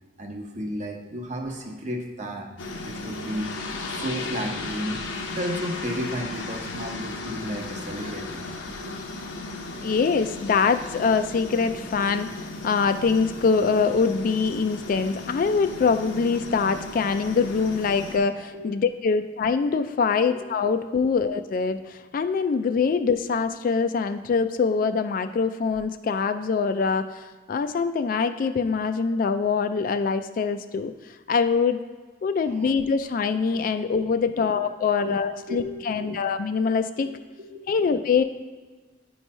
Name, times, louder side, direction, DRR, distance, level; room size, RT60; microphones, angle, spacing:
voice 1, 0.2-2.5 2.8-3.5 3.9-9.2 9.8-9.9 18.5-18.7 20.3-20.4 32.4-32.7 34.3-34.6 35.0-36.4 37.4-38.0, equal, 40° right, 3 dB, 0.9 m, -34 dB
sound 1, 2.6-18.2, left 2 dB, 90° left, 0.8 m, -35 dB
voice 2, 9.8-30.9 31.3-31.8 32.2-37.1 37.7-38.2, left 5 dB, 45° left, 10 dB, 0.3 m, -24 dB
9.2 x 3.1 x 5.4 m, 1.4 s
head